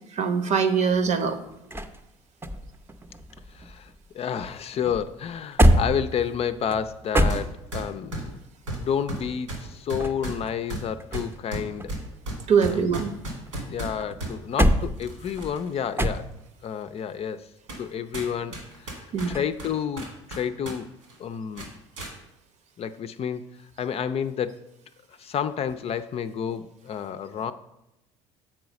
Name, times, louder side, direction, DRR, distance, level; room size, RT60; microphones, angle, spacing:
voice 1, 0.2-1.4 12.5-13.1 19.1-19.4, right 6 dB, 50° right, 8 dB, 0.9 m, -22 dB
sound 1, 0.9-4.1 4.4-8.0 9.7-11.5 11.8-13.5 14.0-16.6 19.2-19.6, equal, 15° right, 0.7 m, -26 dB
voice 2, 3.5-8.4 8.8-11.9 12.6-12.9 13.7-16.3 16.6-17.5 17.7-18.5 18.8-20.9 21.2-21.8 22.8-23.4 23.8-24.6 25.2-27.5, left 8 dB, 40° left, 10 dB, 0.5 m, -30 dB
sound 2, 7.3-7.4 7.7-14.3 15.0-15.7 16.2-16.3 17.0-17.1 17.7-17.9 18.1-20.8 21.0-21.2 21.6-22.1, right 1 dB, 85° right, 2.2 m, -35 dB
7.5 x 4.7 x 5.2 m, 0.88 s
hypercardioid pair, 60°, 15 cm